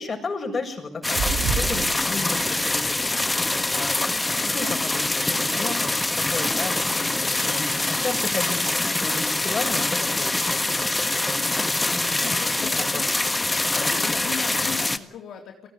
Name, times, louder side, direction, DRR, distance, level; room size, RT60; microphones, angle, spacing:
voice 1, 0.0-4.0 4.4-8.7 9.0-10.9 11.1-11.7 12.9-13.0 13.8-13.9, left 3 dB, 35° left, 2 dB, 7.5 m, -34 dB
sound 1, 1.0-15.0, left 2 dB, 15° left, 1.5 m, -24 dB
sound 2, 1.1-5.8 6.4-6.7 7.0-7.1, right 6 dB, 85° right, 3.5 m, -34 dB
voice 2, 12.2-13.2 13.6-15.7, left 8 dB, 70° left, 1 dB, 3.7 m, -38 dB
22.5 x 17.0 x 9.8 m, 0.63 s
cardioid pair, 90°, 0 cm